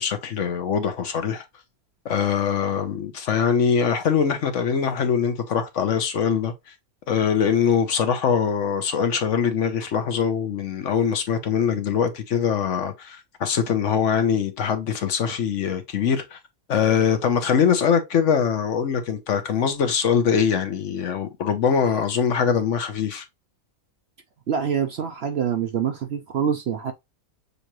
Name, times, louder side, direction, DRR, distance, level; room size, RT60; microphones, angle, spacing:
voice 1, 0.0-1.4 2.0-6.5 7.1-16.4 16.7-23.2, left 7 dB, 60° left, 1.1 m, -22 dB
voice 2, 24.5-26.9, right 8 dB, 60° right, 0.7 m, -25 dB
6.6 x 2.6 x 3.0 m
omnidirectional pair, 1.5 m